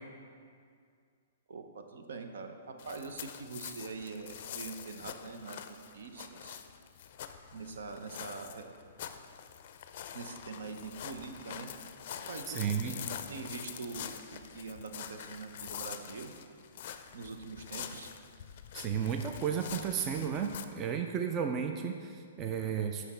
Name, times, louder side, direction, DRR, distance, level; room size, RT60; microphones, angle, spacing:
voice 1, 1.5-6.6 7.5-8.7 10.1-11.7 12.3-16.3 17.1-18.1, right 4 dB, 80° right, 6 dB, 0.8 m, -44 dB
sound 1, 2.8-20.6, left 9 dB, 50° left, 0.4 m, -45 dB
voice 2, 12.5-13.0 18.7-23.0, right 7 dB, 25° right, 5 dB, 0.3 m, -33 dB
8.2 x 5.7 x 4.3 m, 2.2 s
hypercardioid pair, 155°, 0 cm